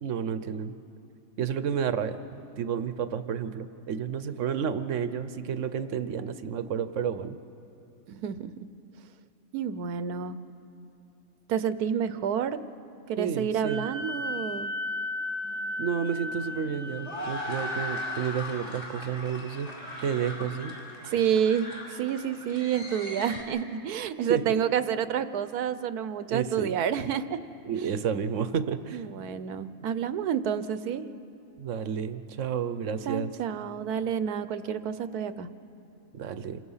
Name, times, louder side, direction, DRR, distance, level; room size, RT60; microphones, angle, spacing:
voice 1, 0.0-0.7 1.4-2.2 2.6-7.4 13.2-13.9 15.8-19.7 20.0-20.7 24.3-24.5 26.3-26.7 27.7-29.1 31.6-33.3 36.1-36.6, right 7 dB, 60° right, 11 dB, 1.1 m, -31 dB
voice 2, 8.1-8.5 9.5-10.4 11.5-12.6 13.1-14.7 21.1-27.4 28.9-31.0 33.1-35.5, right 8 dB, 80° right, 13 dB, 1.2 m, -29 dB
Wind instrument woodwind instrument, 13.6-18.3, left 1 dB, 65° left, 3.7 m, -35 dB
sound 1, 15.4-23.4, left 1 dB, 45° left, 3.9 m, -40 dB
27.0 x 22.5 x 5.6 m, 2.7 s
omnidirectional pair, 1.6 m